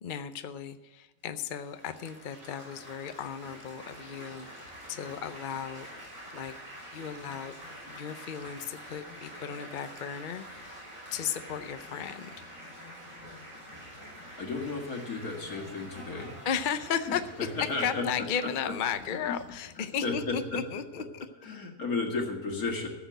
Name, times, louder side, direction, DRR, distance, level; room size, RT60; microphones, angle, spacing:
voice 1, 0.0-5.9 6.3-6.5 6.9-7.5 7.9-10.9 11.1-12.3 16.5-17.2 17.8-21.3, left 8 dB, 50° left, 10 dB, 0.6 m, -35 dB
Laughter / Applause / Chatter, 1.5-20.6, equal, 60° right, 6.4 m, -47 dB
voice 2, 13.9-16.4 17.1-18.3 18.7-18.8 19.1-19.3 19.8-20.6 21.4-22.9, left 3 dB, 80° left, 1 dB, 2.5 m, -34 dB
14.0 x 7.2 x 7.8 m, 1.2 s
omnidirectional pair, 1.5 m